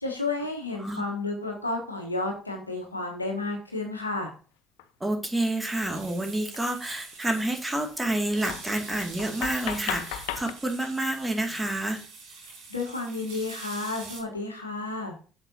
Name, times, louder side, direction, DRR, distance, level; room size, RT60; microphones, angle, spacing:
voice 1, 0.0-4.3 12.7-15.1, left 3 dB, 90° left, 1 dB, 1.3 m, -31 dB
sound 1, 4.8-4.9 6.5-6.6 6.9-7.1 7.8-7.9 8.4-10.5, left 11 dB, 70° left, 0.5 m, -36 dB
voice 2, 5.0-12.0, right 1 dB, 15° right, 4 dB, 2.3 m, -29 dB
sound 2, 5.7-14.2, right 4 dB, 70° right, 3.3 m, -45 dB
8.8 x 7.2 x 2.8 m, 0.38 s
figure-of-eight pair, 50°, 0 cm